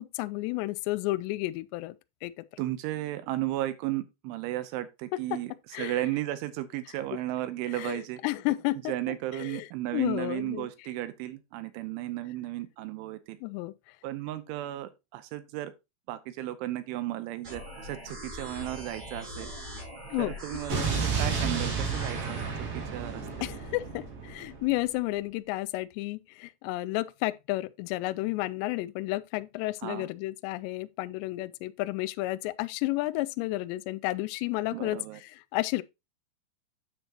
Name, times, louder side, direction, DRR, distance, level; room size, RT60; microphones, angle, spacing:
voice 1, 0.0-2.0 2.2-2.6 5.1-5.4 5.7-6.0 7.7-9.7 9.9-10.7 13.4-13.7 20.1-20.3 20.7-20.8 23.4-35.8, left 18 dB, 90° left, 2.5 m, -32 dB
voice 2, 2.6-5.5 5.8-8.2 8.9-13.4 14.0-15.7 16.1-19.5 20.2-22.4 22.9-23.2 29.8-30.1 34.7-35.2, right 15 dB, 80° right, 3.1 m, -34 dB
sound 1, 17.4-22.4, equal, 30° right, 5.0 m, -41 dB
Explosion, 20.7-24.7, right 5 dB, 55° right, 4.2 m, -31 dB
9.2 x 7.0 x 2.9 m
omnidirectional pair, 5.6 m